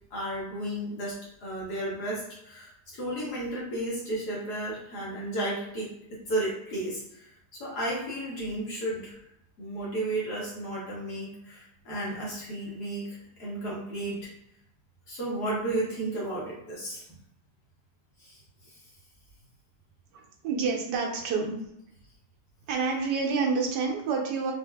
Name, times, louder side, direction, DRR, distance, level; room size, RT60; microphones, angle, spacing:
voice 1, 0.1-1.2 1.4-9.2 9.6-14.3 15.1-17.0 18.2-18.4 18.7-18.8, right 1 dB, 70° left, -5 dB, 1.8 m, -33 dB
voice 2, 20.1-21.5 22.7-24.5, right 4 dB, 85° right, 0 dB, 1.3 m, -28 dB
4.3 x 2.6 x 2.3 m, 0.80 s
omnidirectional pair, 1.8 m